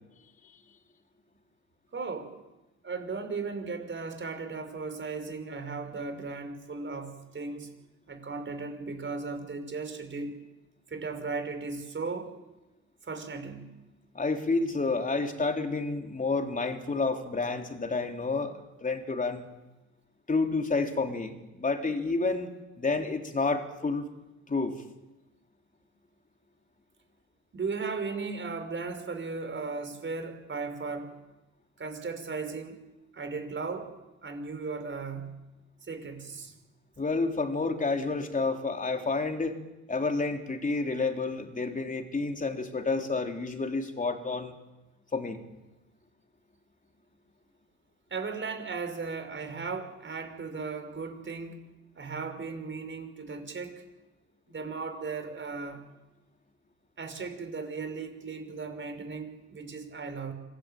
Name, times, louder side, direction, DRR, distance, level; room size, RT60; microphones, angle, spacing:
voice 1, 1.9-2.3 2.8-7.7 8.1-10.3 10.9-12.3 13.0-13.7 27.5-31.1 31.8-32.8 33.1-33.9 34.2-35.3 35.9-36.5 48.1-51.6 52.0-53.8 54.5-55.8 57.0-60.3, right 4 dB, 40° right, 7 dB, 5.5 m, -36 dB
voice 2, 14.1-18.5 18.8-19.5 20.3-24.0 24.5-24.8 37.0-39.6 39.9-44.5 45.1-45.4, left 3 dB, 25° left, 4 dB, 3.8 m, -29 dB
26.0 x 19.5 x 9.1 m, 1.1 s
cardioid pair, 90°, 30 cm